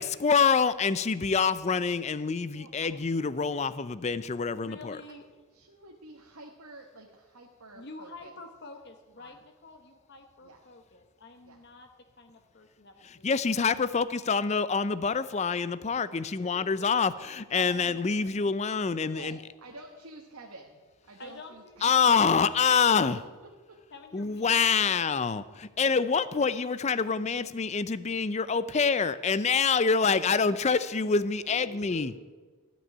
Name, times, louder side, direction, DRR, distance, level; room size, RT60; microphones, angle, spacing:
voice 1, 0.0-5.0 13.2-19.4 21.8-23.2 24.1-32.1, left 5 dB, 30° left, 15 dB, 0.4 m, -26 dB
voice 2, 2.5-3.0 5.1-8.4 9.2-9.4 10.4-10.6 11.4-11.6 16.2-16.5 19.0-22.1 22.8-23.8 31.5-32.2, right 2 dB, 80° right, 1 dB, 1.3 m, -49 dB
voice 3, 4.6-5.3 7.7-11.9 12.2-13.3 17.6-18.0 21.2-22.1 23.9-24.9, left 3 dB, 50° left, 5 dB, 0.9 m, -48 dB
15.0 x 6.2 x 9.4 m, 1.3 s
head